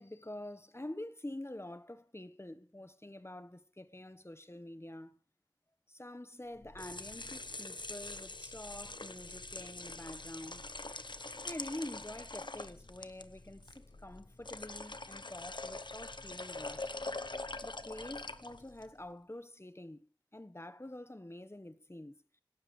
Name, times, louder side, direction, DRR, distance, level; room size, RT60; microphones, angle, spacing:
voice 1, 0.0-5.1 5.9-10.6 11.4-16.9 17.6-22.2, left 1 dB, 30° left, 1.1 m, -47 dB
sound 1, 6.6-18.9, left 2 dB, 65° left, 0.9 m, -44 dB
25.5 x 12.0 x 3.2 m
wide cardioid pair, 40°, 9 cm